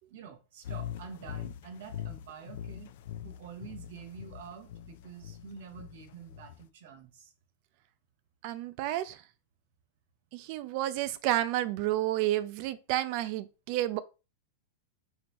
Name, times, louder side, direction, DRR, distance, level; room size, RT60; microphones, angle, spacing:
voice 1, 0.1-2.9 3.2-7.3, right 6 dB, 70° right, 1.1 m, -47 dB
sound 1, 0.6-6.7, left 10 dB, 65° left, 0.5 m, -42 dB
voice 2, 8.4-9.2 10.3-14.0, right 14 dB, 55° right, 0.5 m, -30 dB
4.5 x 3.7 x 3.0 m
hypercardioid pair, 125°, 0 cm